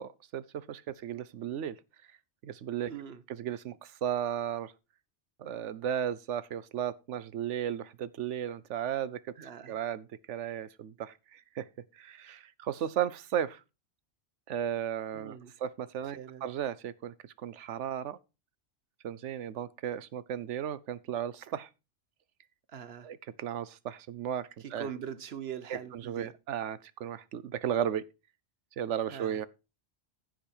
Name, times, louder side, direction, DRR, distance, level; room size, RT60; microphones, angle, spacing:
voice 1, 0.0-1.8 2.4-2.9 3.3-4.7 5.4-9.3 9.7-11.7 11.9-13.6 14.5-18.2 19.0-21.7 23.0-24.9 25.7-28.0 28.8-29.5, right 9 dB, 85° right, 1.1 m, -35 dB
voice 2, 2.8-3.2 9.4-9.8 15.1-15.5 16.1-16.4 22.7-23.1 24.6-26.3 29.1-29.4, right 8 dB, 65° right, 1.1 m, -42 dB
15.0 x 5.2 x 4.4 m
omnidirectional pair, 1.2 m